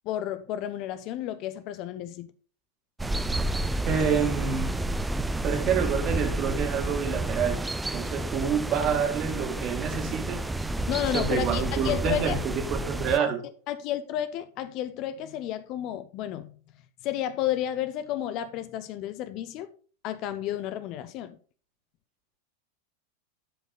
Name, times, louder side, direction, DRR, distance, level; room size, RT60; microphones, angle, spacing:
voice 1, 0.0-2.3 10.9-12.4 13.2-13.3 13.7-16.5 17.0-19.7 20.0-21.4, left 11 dB, 40° left, 0.6 m, -32 dB
sound 1, 3.0-13.2, right 2 dB, 5° right, 0.5 m, -30 dB
voice 2, 3.9-4.7 5.4-7.6 7.9-10.4 11.1-12.4 12.7-13.4, right 7 dB, 35° right, 2.1 m, -27 dB
11.0 x 5.2 x 3.8 m
figure-of-eight pair, 90°, 0 cm